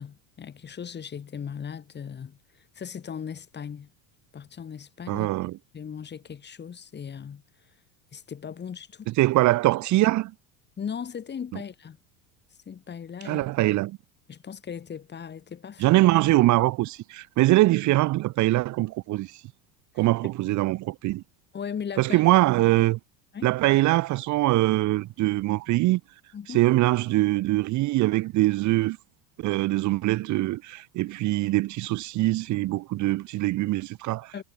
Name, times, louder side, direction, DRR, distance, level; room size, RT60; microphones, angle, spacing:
voice 1, 0.0-2.4 2.7-3.9 4.3-5.3 5.7-7.4 8.1-9.1 10.8-12.0 12.6-13.5 14.3-15.9 21.5-22.3 23.3-23.5 26.3-26.7 34.3-34.4, left 7 dB, 25° left, 3.4 m, -37 dB
voice 2, 5.1-5.6 9.1-10.3 13.2-14.0 15.8-19.4 20.0-21.2 22.0-23.0 23.4-26.0 26.5-29.0 29.4-34.3, right 18 dB, 45° right, 1.0 m, -23 dB
supercardioid pair, 120°, 40 cm